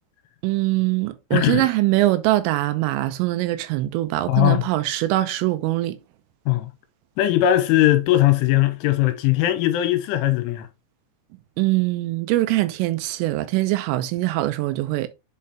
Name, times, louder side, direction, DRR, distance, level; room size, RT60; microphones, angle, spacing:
voice 1, 0.4-6.0 11.6-15.1, right 17 dB, 85° right, 3.3 m, -22 dB
voice 2, 1.3-1.6 4.3-4.6 6.5-6.7 7.2-10.7, left 14 dB, 85° left, 3.2 m, -19 dB
7.5 x 4.3 x 3.4 m
omnidirectional pair, 5.7 m